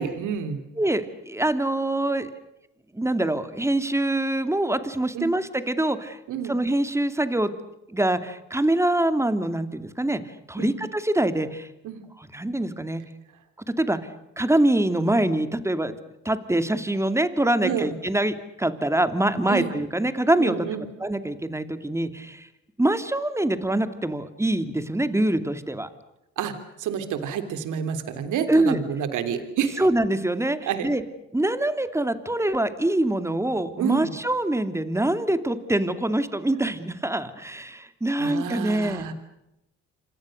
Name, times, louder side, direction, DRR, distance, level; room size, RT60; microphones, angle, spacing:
voice 1, 0.0-0.6 5.1-5.3 6.3-6.5 10.6-10.8 11.8-12.0 17.6-17.9 19.5-19.7 20.4-20.8 26.4-29.8 30.7-30.9 33.8-34.2 38.2-39.1, right 8 dB, 85° right, 9 dB, 3.3 m, -29 dB
voice 2, 0.8-2.3 2.9-6.2 6.5-7.5 7.9-10.2 10.5-11.7 12.2-13.0 13.8-14.0 14.4-16.0 16.2-20.7 21.0-22.5 22.8-25.9 28.5-28.8 29.8-31.0 31.3-39.0, right 1 dB, 10° right, 10 dB, 2.6 m, -24 dB
28.5 x 26.0 x 6.6 m, 0.88 s
cardioid pair, 90°, 30 cm